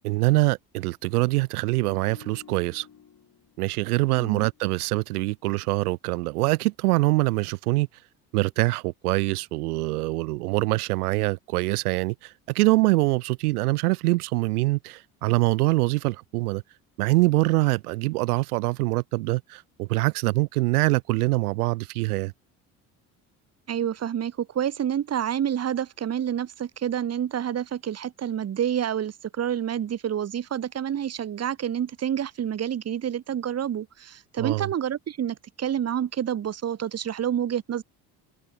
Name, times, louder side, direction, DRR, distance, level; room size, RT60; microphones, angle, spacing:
voice 1, 0.0-2.9 3.6-7.9 8.3-16.6 17.0-22.3 34.4-34.7, right 21 dB, 80° right, 0.7 m, -24 dB
sound 1, 1.7-5.0 5.3-5.6, left 8 dB, 45° left, 6.5 m, -52 dB
voice 2, 23.7-37.8, right 9 dB, 35° right, 1.1 m, -28 dB
hypercardioid pair, 55°, 44 cm